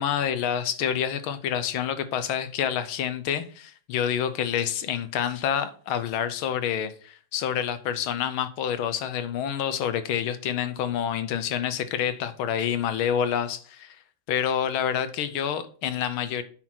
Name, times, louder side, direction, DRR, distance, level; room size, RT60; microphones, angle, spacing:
voice 1, 0.0-14.0 14.3-16.4, left 9 dB, 75° left, 1.6 m, -28 dB
8.8 x 5.9 x 4.4 m
omnidirectional pair, 2.3 m